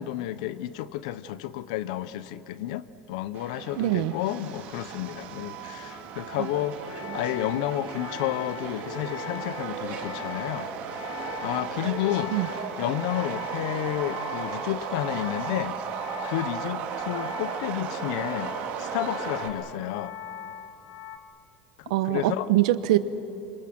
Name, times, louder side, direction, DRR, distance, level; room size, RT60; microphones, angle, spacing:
voice 1, 0.0-10.7 11.4-12.4 12.8-15.8 16.3-20.2 21.8-22.5, left 13 dB, 75° left, 15 dB, 0.9 m, -31 dB
Subway metro underground, 3.3-19.5, right 7 dB, 45° right, 2.4 m, -35 dB
voice 2, 3.8-4.1 6.4-6.5 12.3-12.5 21.9-23.0, right 15 dB, 85° right, 13 dB, 1.1 m, -23 dB
sound 1, 6.7-21.2, left 9 dB, 40° left, 1.2 m, -41 dB
29.0 x 26.5 x 6.2 m, 2.9 s
cardioid pair, 165°, 4 cm